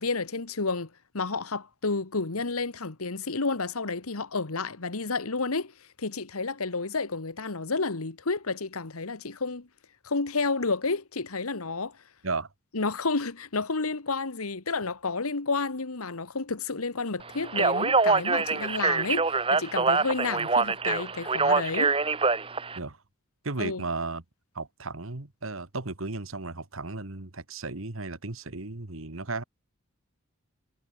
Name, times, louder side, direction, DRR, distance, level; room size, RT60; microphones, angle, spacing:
voice 1, 0.0-9.7 10.0-12.0 12.7-22.0 23.6-23.8, left 3 dB, 90° left, 1.5 m, -31 dB
Speech, 17.4-22.8, right 4 dB, 25° right, 1.5 m, -25 dB
voice 2, 23.4-24.2 24.6-29.4, right 3 dB, 70° right, 1.8 m, -34 dB
head